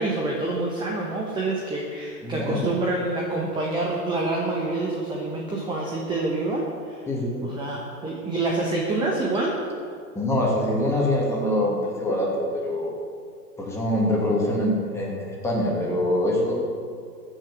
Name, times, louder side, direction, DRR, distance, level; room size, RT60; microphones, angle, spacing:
voice 1, 0.0-7.1 7.4-9.6, right 2 dB, 10° right, -2 dB, 1.2 m, -27 dB
voice 2, 2.2-2.6 7.1-7.5 10.1-12.9 13.6-16.6, left 1 dB, 5° left, -4 dB, 2.8 m, -24 dB
14.5 x 6.3 x 7.5 m, 2.2 s
figure-of-eight pair, 120°, 48 cm